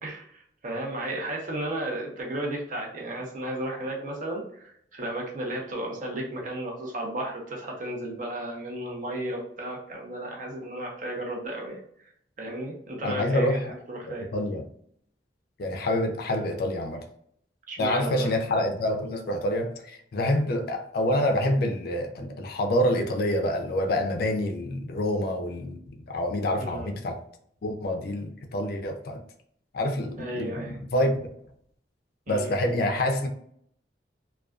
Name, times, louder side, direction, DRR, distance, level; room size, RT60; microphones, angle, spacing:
voice 1, 0.0-11.8 12.4-14.3 17.7-18.3 26.6-26.9 30.2-30.8 32.3-32.5, right 1 dB, 45° right, -1 dB, 0.6 m, -34 dB
voice 2, 13.0-13.7 14.1-14.6 15.6-17.1 17.8-25.8 26.1-27.2 27.6-29.2 29.7-31.2 32.3-33.3, left 1 dB, 55° left, 4 dB, 0.4 m, -27 dB
2.3 x 2.2 x 2.3 m, 0.67 s
head